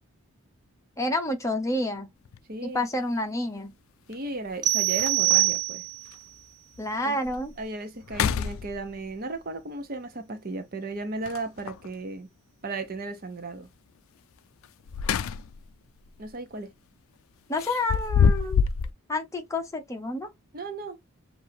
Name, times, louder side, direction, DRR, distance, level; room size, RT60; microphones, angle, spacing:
voice 1, 1.0-2.1 2.6-3.7 6.8-7.5 17.5-18.6 19.1-20.3, left 1 dB, 15° left, 0.9 m, -29 dB
sound 1, 2.3-2.4 4.1-4.2 4.6-4.7 5.0-5.5 6.1-6.2 6.8-6.9 7.3-7.6 8.0-9.1 11.2-11.9 14.6-15.7 16.1-16.3 17.6-18.9, left 6 dB, 65° left, 0.3 m, -26 dB
voice 2, 2.5-2.8 4.1-5.8 7.0-7.2 7.6-12.3 12.6-13.7 16.2-16.7 20.5-21.0, right 3 dB, 40° right, 0.7 m, -35 dB
sound 2, 4.6-6.1, right 18 dB, 20° right, 0.4 m, -24 dB
6.6 x 2.6 x 2.7 m
head